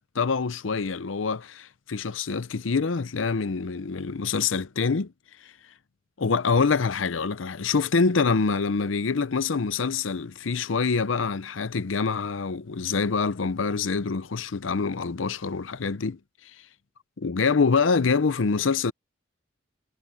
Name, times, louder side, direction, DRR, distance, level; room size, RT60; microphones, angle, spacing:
voice 1, 0.1-5.1 6.2-16.2 17.2-18.9, left 4 dB, 90° left, 0.7 m, -25 dB
head